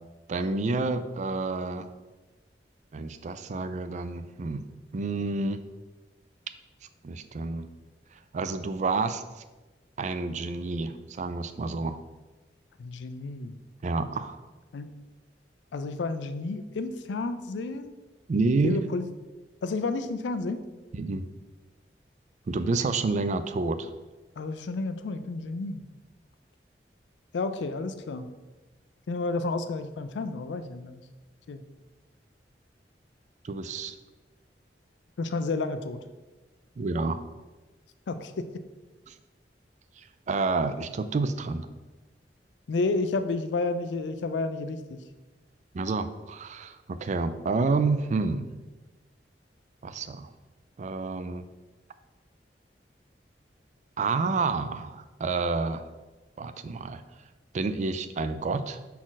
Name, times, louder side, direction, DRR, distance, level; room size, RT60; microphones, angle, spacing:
voice 1, 0.3-1.9 2.9-4.6 4.9-5.6 7.0-7.7 8.3-9.2 10.0-12.0 13.8-14.4 18.3-18.8 20.9-21.3 22.5-23.9 33.4-33.9 36.8-37.2 39.1-39.2 40.0-41.7 45.7-48.5 49.8-50.3 50.8-51.4 54.0-55.9 56.4-57.0 57.5-58.8, right 3 dB, 45° right, 11 dB, 0.4 m, -29 dB
voice 2, 12.8-13.6 14.7-14.9 15.7-17.9 18.6-19.0 19.6-20.6 24.4-25.8 27.3-28.3 29.1-31.0 31.5-31.6 35.2-36.0 38.1-38.6 42.7-45.0, left 3 dB, 90° left, 10 dB, 0.4 m, -31 dB
6.0 x 4.3 x 3.9 m, 1.2 s
head